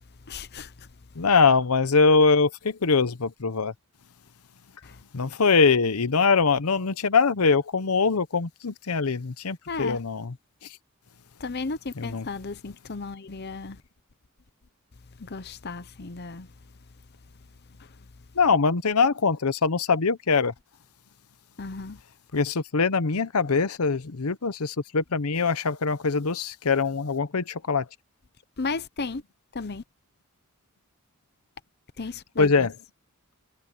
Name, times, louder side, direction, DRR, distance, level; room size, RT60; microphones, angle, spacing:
voice 1, 0.3-0.9 4.8-5.0 9.7-10.0 11.4-13.8 15.2-16.5 17.8-18.0 21.6-22.0 28.6-29.2 29.5-29.8 32.0-32.7, left 4 dB, 45° left, 0.8 m, -34 dB
voice 2, 1.2-3.7 5.1-10.3 10.6-10.8 12.0-12.2 18.3-20.5 22.3-27.9 32.4-32.7, left 4 dB, 80° left, 0.9 m, -23 dB
head